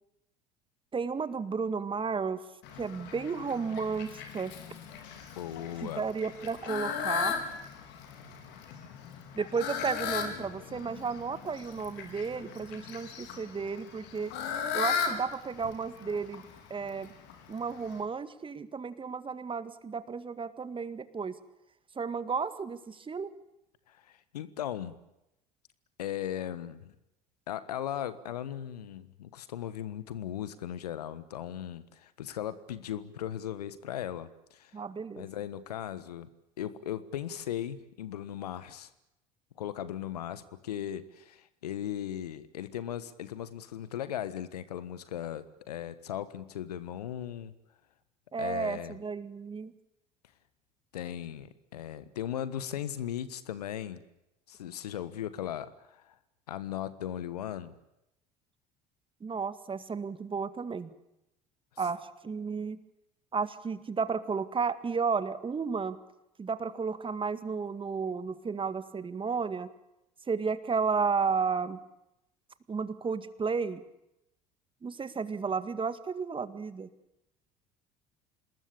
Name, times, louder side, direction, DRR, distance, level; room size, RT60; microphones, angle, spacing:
voice 1, 0.9-2.5 2.8-4.5 5.8-7.4 9.4-14.3 14.7-17.1 17.5-21.4 22.0-23.3 34.7-35.3 48.3-49.7 59.2-60.9 61.8-62.8 63.3-66.0 66.4-69.7 70.3-71.8 72.7-73.8 74.8-76.9, right 5 dB, 25° right, 13 dB, 2.0 m, -33 dB
Fowl, 2.6-18.0, left 7 dB, 60° left, 4.7 m, -38 dB
voice 2, 5.3-6.0 23.9-24.9 26.0-26.9 27.5-34.8 35.2-36.3 36.6-38.9 39.6-47.5 48.4-49.0 50.9-54.0 54.5-56.1 56.5-57.7, left 10 dB, 75° left, 15 dB, 1.5 m, -37 dB
27.0 x 20.5 x 8.7 m, 0.86 s
figure-of-eight pair, 65°, 20 cm